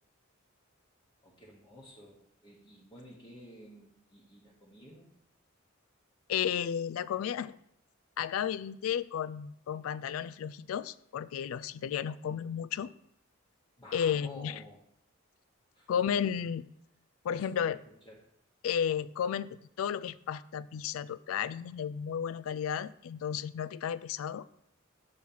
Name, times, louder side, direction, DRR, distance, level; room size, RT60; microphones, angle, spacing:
voice 1, 1.2-2.2 2.4-5.1 13.8-14.8 15.7-15.9 16.2-16.4 17.3-18.2, left 1 dB, 20° left, -4 dB, 1.1 m, -52 dB
voice 2, 6.3-7.6 8.2-12.9 13.9-14.5 15.9-16.6 17.2-17.8 18.6-24.5, left 8 dB, 80° left, 17 dB, 0.3 m, -33 dB
6.4 x 4.3 x 5.4 m, 0.73 s
head